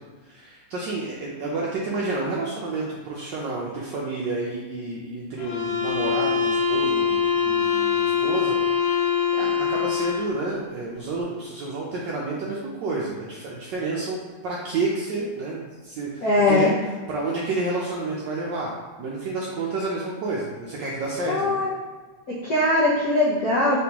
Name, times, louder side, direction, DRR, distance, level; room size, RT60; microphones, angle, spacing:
voice 1, 0.2-16.7 17.1-18.7 19.0-21.6, right 3 dB, 75° right, -4 dB, 1.0 m, -30 dB
sound 1, 5.4-10.4, left 7 dB, 90° left, 1.6 m, -23 dB
voice 2, 16.2-16.7 21.3-21.7 22.3-23.8, left 2 dB, 65° left, -7 dB, 0.9 m, -21 dB
3.9 x 3.5 x 2.9 m, 1.3 s
omnidirectional pair, 2.4 m